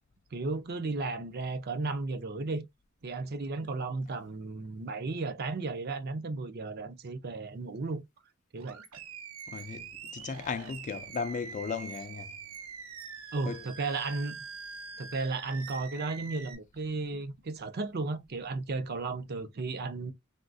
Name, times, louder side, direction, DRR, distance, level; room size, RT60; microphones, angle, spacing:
voice 1, 0.3-2.6 3.0-8.0 8.5-8.8 13.3-14.4 15.0-20.1, right 3 dB, 50° right, 0.5 m, -34 dB
Animal, 8.6-16.5, right 5 dB, 85° right, 0.7 m, -44 dB
voice 2, 9.5-12.3 13.5-13.6, left 5 dB, 35° left, 0.3 m, -36 dB
3.6 x 2.3 x 2.5 m
head